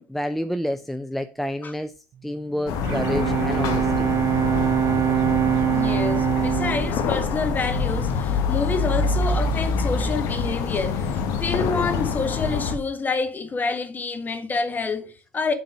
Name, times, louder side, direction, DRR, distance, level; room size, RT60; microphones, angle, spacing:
voice 1, 0.0-1.9 2.2-4.1, equal, ahead, 0.5 m, -29 dB
Bowed string instrument, 2.6-8.4, right 10 dB, 45° right, 0.4 m, -24 dB
sound 1, 2.7-12.8, left 5 dB, 65° left, 1.5 m, -25 dB
voice 2, 5.6-15.5, left 4 dB, 25° left, 1.6 m, -28 dB
7.9 x 3.9 x 6.1 m
supercardioid pair, 90°, 7 cm